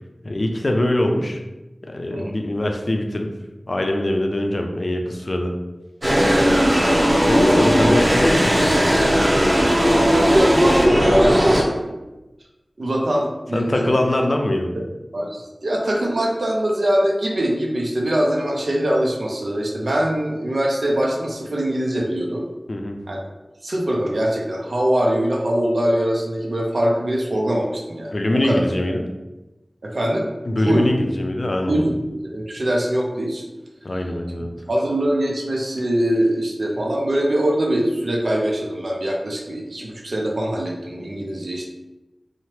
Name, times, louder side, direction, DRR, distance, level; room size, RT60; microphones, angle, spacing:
voice 1, 0.2-1.4 1.9-3.3 3.7-5.5 7.2-8.9 13.5-14.7 22.7-23.0 28.1-29.1 30.5-31.8 33.8-34.5, left 1 dB, 55° left, 3 dB, 0.3 m, -22 dB
sound 1, 6.0-11.6, equal, 50° right, 0.8 m, -17 dB
voice 2, 9.6-12.0 12.8-14.0 14.7-14.8 15.1-22.5 23.1-23.2 23.6-28.1 28.4-28.6 29.8-30.3 30.6-30.9 31.7-33.4 34.7-41.7, right 1 dB, 80° right, -1 dB, 0.4 m, -22 dB
2.8 x 2.0 x 3.1 m, 1.1 s
wide cardioid pair, 55°, 0 cm